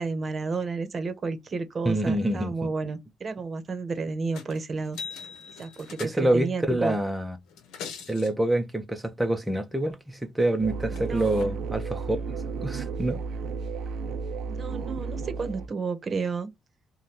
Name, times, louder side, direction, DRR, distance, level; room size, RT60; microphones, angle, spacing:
voice 1, 0.0-5.0 5.6-6.9 10.9-11.5 14.5-16.5, right 4 dB, 40° right, 0.8 m, -31 dB
voice 2, 1.8-2.7 6.0-7.4 8.1-13.2, right 1 dB, 5° right, 0.5 m, -26 dB
sound 1, 4.3-4.6 4.8-6.5 7.5-8.3 10.5-10.6 10.9-11.4 12.4-12.5, left 6 dB, 90° left, 0.8 m, -42 dB
sound 2, 10.6-15.7, right 5 dB, 75° right, 0.4 m, -33 dB
2.7 x 2.2 x 3.5 m
cardioid pair, 90°, 0 cm